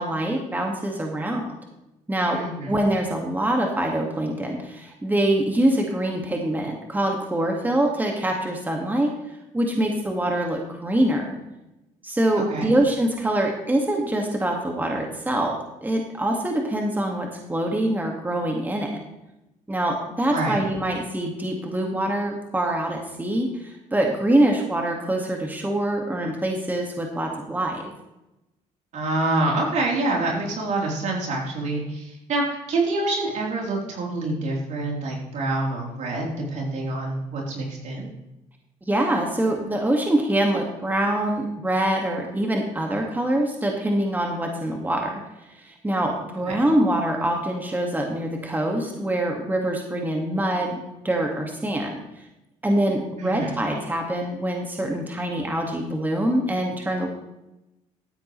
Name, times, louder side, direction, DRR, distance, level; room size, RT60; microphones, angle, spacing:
voice 1, 0.0-1.5 2.1-2.4 2.7-9.1 9.5-11.4 12.0-19.0 19.7-27.8 33.2-33.3 38.8-45.2 45.5-52.2 52.6-57.1, right 1 dB, 15° right, 1 dB, 2.0 m, -24 dB
voice 2, 2.3-2.7 12.4-12.7 20.3-20.6 28.9-38.1 46.5-46.6 53.2-53.5, right 2 dB, 65° right, -2 dB, 3.9 m, -26 dB
13.0 x 9.6 x 3.3 m, 0.94 s
supercardioid pair, 75°, 13 cm